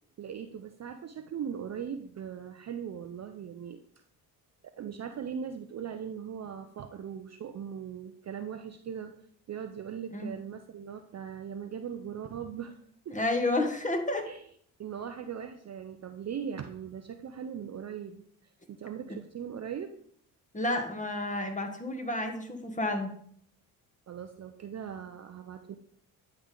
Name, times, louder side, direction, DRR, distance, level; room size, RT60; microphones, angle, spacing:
voice 1, 0.2-3.8 4.8-9.2 9.5-13.2 14.2-14.4 14.8-20.0 24.1-25.8, right 8 dB, 35° right, 7 dB, 0.5 m, -39 dB
voice 2, 13.1-14.3 20.5-23.1, left 2 dB, 15° left, 5 dB, 1.3 m, -30 dB
9.9 x 3.4 x 3.8 m, 0.62 s
hypercardioid pair, 55°, 49 cm